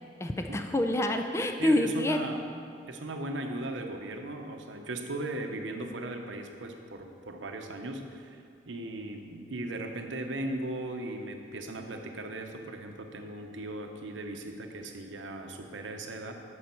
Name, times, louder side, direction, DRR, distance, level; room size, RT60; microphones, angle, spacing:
voice 1, 0.2-2.2, left 1 dB, 15° left, 5 dB, 0.4 m, -27 dB
voice 2, 1.6-2.4 2.9-16.3, right 2 dB, 80° right, 4 dB, 0.8 m, -38 dB
9.4 x 6.3 x 4.4 m, 2.3 s
head